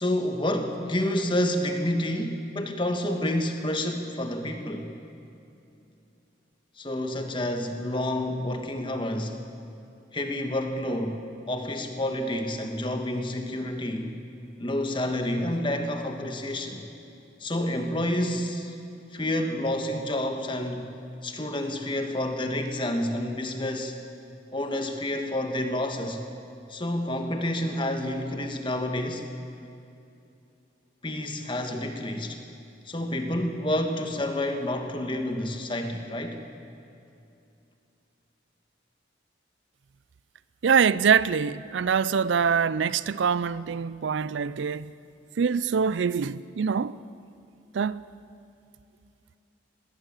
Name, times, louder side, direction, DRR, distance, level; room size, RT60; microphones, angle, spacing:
voice 1, 0.0-4.9 6.8-9.4 10.1-14.2 14.6-16.9 17.4-18.8 19.1-20.8 21.2-23.9 24.5-26.2 26.7-29.3 31.0-32.4 32.9-36.4, left 1 dB, 25° left, 1.5 m, -29 dB
voice 2, 40.6-44.9 45.4-47.0 47.7-48.0, right 6 dB, 80° right, 0.4 m, -24 dB
20.0 x 17.5 x 7.4 m
head